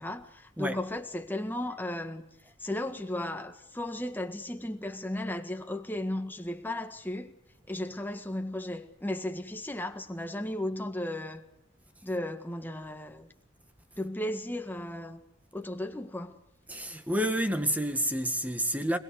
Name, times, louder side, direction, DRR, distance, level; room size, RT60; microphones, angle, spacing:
voice 1, 0.0-2.3 2.6-7.4 7.7-11.4 12.0-13.3 14.0-15.2 15.5-16.4, left 1 dB, 10° left, 1.6 m, -35 dB
voice 2, 16.7-19.0, right 1 dB, 10° right, 1.6 m, -29 dB
23.0 x 21.5 x 8.2 m
head